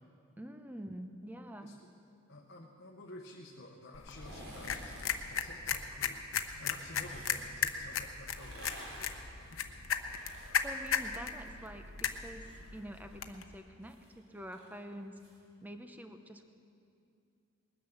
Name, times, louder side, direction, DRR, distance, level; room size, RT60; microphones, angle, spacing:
voice 1, 0.4-1.8 10.0-10.3 10.5-12.5 12.7-15.2 15.6-16.5, equal, 10° right, 6 dB, 0.8 m, -47 dB
voice 2, 1.6-1.9 2.3-8.7 9.5-9.6, left 1 dB, 55° left, 0 dB, 1.0 m, -51 dB
sound 1, 3.9-13.4, left 7 dB, 80° left, 0.9 m, -37 dB
sound 2, 4.0-5.2 6.4-7.4 8.2-11.6 11.9-15.4 15.7-15.8, right 1 dB, 90° right, 3.8 m, -52 dB
20.0 x 10.0 x 7.1 m, 2.5 s
head